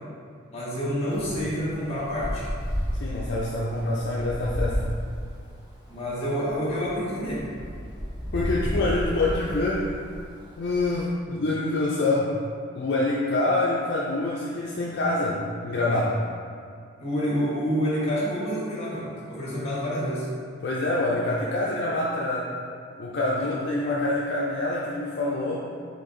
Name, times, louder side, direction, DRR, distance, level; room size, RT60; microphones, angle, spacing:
voice 1, 0.5-2.4 5.9-7.4 17.0-20.3 23.4-23.5, equal, 30° left, -8 dB, 1.4 m, -28 dB
Wind, 1.1-11.0, equal, 20° right, 0.7 m, -33 dB
voice 2, 3.0-4.9 8.3-9.9 10.6-12.3 12.7-16.2 20.6-22.5 23.0-25.7, left 2 dB, 55° left, -5 dB, 0.4 m, -26 dB
4.3 x 3.1 x 3.8 m, 2.2 s
head